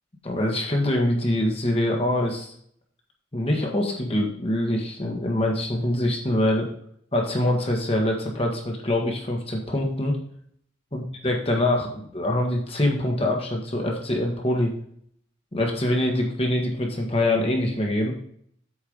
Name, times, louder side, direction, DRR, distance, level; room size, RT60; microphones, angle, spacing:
voice 1, 0.2-2.5 3.3-6.7 7.1-10.2 10.9-14.7 15.5-18.1, left 1 dB, 30° left, 0 dB, 1.5 m, -24 dB
8.4 x 4.7 x 5.2 m, 0.65 s
head